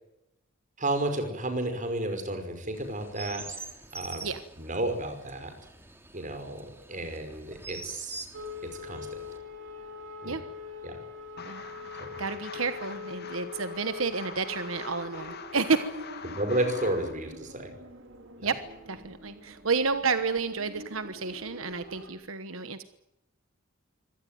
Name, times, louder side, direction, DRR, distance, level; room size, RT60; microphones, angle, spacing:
voice 1, 0.8-4.3 4.6-5.5 6.1-8.3 8.8-9.1 10.2-10.4 10.8-11.0 12.0-12.2 16.2-17.7 18.4-18.5, right 1 dB, 40° right, 7 dB, 5.5 m, -32 dB
Chirp tweet, 2.7-9.4, right 3 dB, 10° right, 2.5 m, -45 dB
sound 1, 8.3-22.1, left 3 dB, 65° right, 4.3 m, -44 dB
sound 2, 11.4-17.1, left 6 dB, 50° left, 2.3 m, -44 dB
voice 2, 12.2-15.9 18.4-18.6 18.9-22.8, right 4 dB, 85° right, 11 dB, 1.3 m, -30 dB
25.0 x 17.5 x 9.4 m, 0.89 s
head